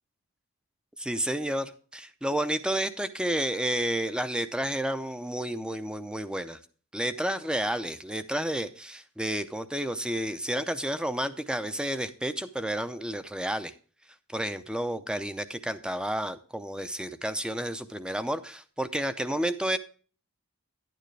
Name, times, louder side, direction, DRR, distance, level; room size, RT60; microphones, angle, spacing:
voice 1, 1.0-6.6 6.9-13.7 14.3-19.8, right 1 dB, 5° right, 11 dB, 0.5 m, -31 dB
11.0 x 9.1 x 3.2 m, 0.40 s
head